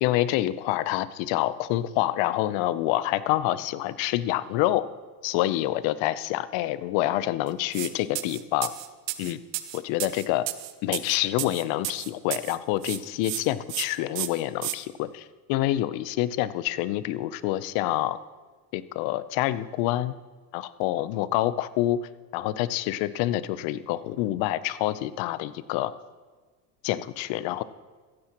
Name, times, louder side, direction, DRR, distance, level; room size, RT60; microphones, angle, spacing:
voice 1, 0.0-4.9 5.2-8.7 9.2-9.4 9.7-10.5 10.8-18.2 18.7-20.1 20.5-22.0 22.3-25.9 26.8-27.6, left 14 dB, 65° left, 15 dB, 0.8 m, -27 dB
sound 1, 7.7-7.9 8.1-12.6 12.8-13.4 13.7-13.8 14.1-14.7, right 16 dB, 90° right, 0.9 m, -32 dB
16.0 x 15.0 x 3.0 m, 1.4 s
supercardioid pair, 95°, 49 cm